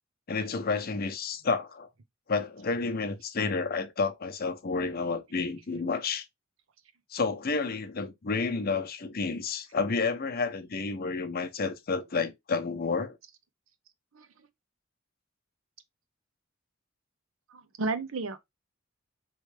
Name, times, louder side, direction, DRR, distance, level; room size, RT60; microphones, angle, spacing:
voice 1, 0.3-1.9 2.3-6.2 7.1-13.2, left 4 dB, 50° left, 0.7 m, -30 dB
voice 2, 17.5-18.5, right 3 dB, 75° right, 0.7 m, -33 dB
4.5 x 3.1 x 3.2 m
head